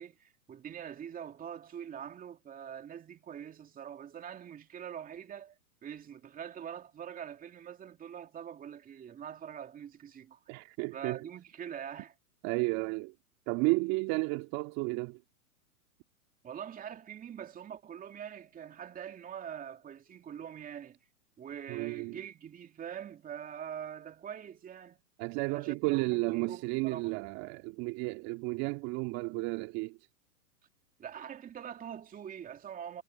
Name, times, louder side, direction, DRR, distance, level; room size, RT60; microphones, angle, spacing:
voice 1, 0.0-5.5 5.8-10.4 10.9-12.1 16.4-21.0 21.4-25.0 25.5-27.2 31.0-33.0, right 9 dB, 20° right, 2.8 m, -44 dB
voice 2, 10.5-11.2 12.4-13.1 13.5-15.2 21.7-22.2 25.2-30.0, right 25 dB, 35° right, 2.1 m, -32 dB
hypercardioid pair, 125°, 45 cm